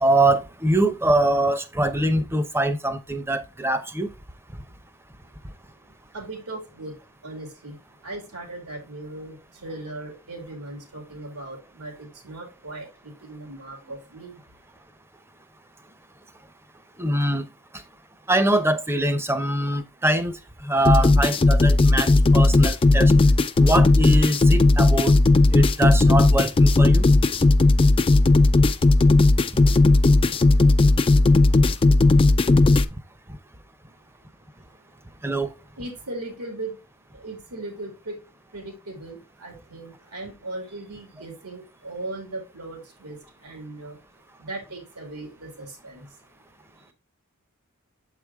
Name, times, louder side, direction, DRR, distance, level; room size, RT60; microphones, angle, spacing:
voice 1, 0.0-4.1 17.0-17.4 18.3-20.4 20.6-23.1 23.6-25.1 25.5-27.1 35.2-35.5, right 1 dB, 10° right, 0.7 m, -23 dB
voice 2, 6.1-7.0 7.2-14.4 35.8-36.8 37.1-38.2 38.5-44.0 44.4-46.1, right 2 dB, 90° right, 2.8 m, -38 dB
sound 1, 20.8-32.8, left 2 dB, 25° left, 0.4 m, -16 dB
7.3 x 4.8 x 3.5 m
head